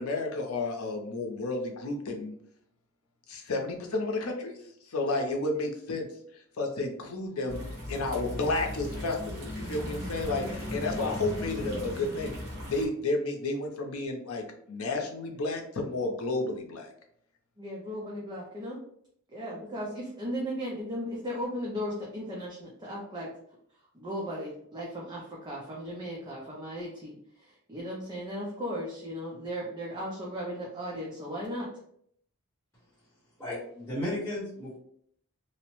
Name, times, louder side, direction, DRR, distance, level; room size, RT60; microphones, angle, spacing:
voice 1, 0.0-2.3 3.3-4.6 4.9-6.1 6.6-7.6 7.9-12.4 12.7-16.9, left 2 dB, 80° left, 2 dB, 0.6 m, -31 dB
sound 1, 7.5-12.9, left 1 dB, 50° right, 1.0 m, -37 dB
voice 2, 17.6-18.8 19.3-23.3 23.9-31.7, equal, 20° right, -4 dB, 0.5 m, -36 dB
voice 3, 33.4-34.8, left 1 dB, 10° left, -7 dB, 0.9 m, -34 dB
2.8 x 2.0 x 2.9 m, 0.67 s
head